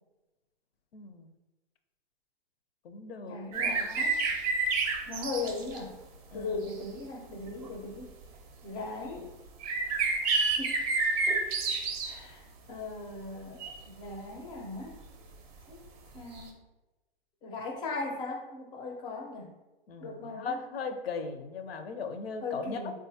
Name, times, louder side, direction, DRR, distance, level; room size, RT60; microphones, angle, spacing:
voice 1, 0.9-1.3 2.8-4.1 6.3-6.6 19.9-22.9, left 4 dB, 80° left, 7 dB, 0.6 m, -38 dB
voice 2, 3.2-4.1 5.1-5.9 6.3-8.1 8.6-9.3 10.2-10.8 11.3-11.4 12.0-14.9 15.7-15.8 16.1-16.5 17.4-19.5 20.0-20.6 22.4-22.9, left 3 dB, 15° left, 1 dB, 0.4 m, -38 dB
sound 1, 3.5-5.8 6.7-6.8 7.7-7.8 9.6-12.1 13.6-13.8 16.4-16.5, right 4 dB, 40° right, 0.5 m, -29 dB
3.8 x 2.3 x 2.6 m, 1.1 s
hypercardioid pair, 125°, 30 cm